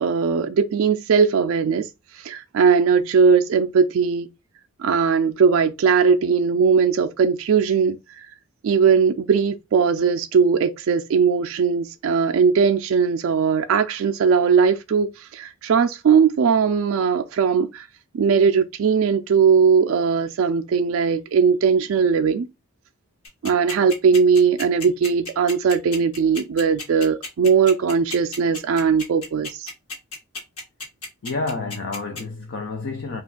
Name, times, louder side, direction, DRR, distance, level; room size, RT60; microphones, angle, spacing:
voice 1, 0.0-1.9 2.2-4.3 4.8-8.3 8.6-17.9 18.1-22.5 23.4-29.7, right 6 dB, 70° right, 0.3 m, -19 dB
sound 1, 23.3-32.2, left 3 dB, 80° left, 1.4 m, -33 dB
voice 2, 31.2-33.2, left 3 dB, 50° left, 0.4 m, -29 dB
2.5 x 2.3 x 3.6 m
head